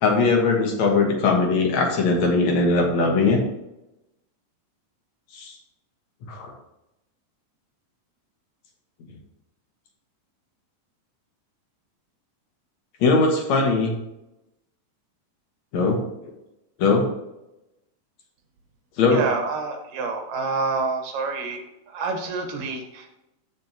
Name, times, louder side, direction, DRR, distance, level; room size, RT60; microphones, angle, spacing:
voice 1, 0.0-3.4 5.3-5.5 6.3-6.5 13.0-13.9 15.7-16.0 16.8-17.1 19.0-19.2, left 3 dB, 65° left, 1 dB, 2.5 m, -20 dB
voice 2, 19.1-23.2, right 4 dB, 80° right, 4 dB, 2.9 m, -28 dB
14.0 x 5.4 x 2.9 m, 0.91 s
omnidirectional pair, 3.8 m